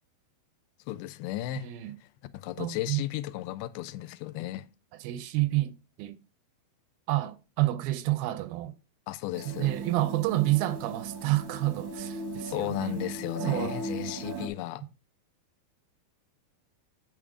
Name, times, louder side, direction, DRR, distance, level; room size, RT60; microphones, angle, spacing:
voice 1, 0.9-1.7 2.0-2.1 2.3-4.7 9.1-9.7 12.5-14.8, left 15 dB, 85° left, 2.4 m, -34 dB
voice 2, 1.6-2.0 2.6-3.0 5.0-6.2 7.1-8.7 9.5-13.0 13.4-13.7, right 17 dB, 85° right, 2.3 m, -29 dB
sound 1, 9.3-14.5, right 3 dB, 65° right, 1.1 m, -37 dB
8.5 x 3.7 x 4.9 m
omnidirectional pair, 4.4 m